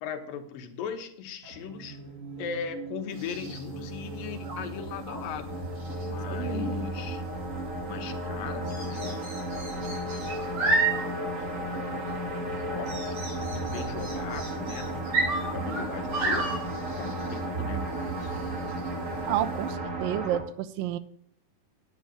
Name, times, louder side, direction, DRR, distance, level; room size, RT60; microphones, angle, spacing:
voice 1, 0.0-2.0 2.4-5.6 5.9-7.2 7.8-9.4 9.8-10.3 10.7-13.2 13.5-16.5 17.0-18.3, left 7 dB, 80° left, 7 dB, 2.8 m, -39 dB
sound 1, 1.4-20.4, right 1 dB, 45° right, 1.0 m, -34 dB
sound 2, 3.1-19.7, right 3 dB, 70° right, 7.7 m, -34 dB
voice 2, 6.3-6.8 19.3-21.0, right 12 dB, 85° right, 15 dB, 2.3 m, -30 dB
9.8 x 9.3 x 4.9 m, 0.63 s
omnidirectional pair, 4.0 m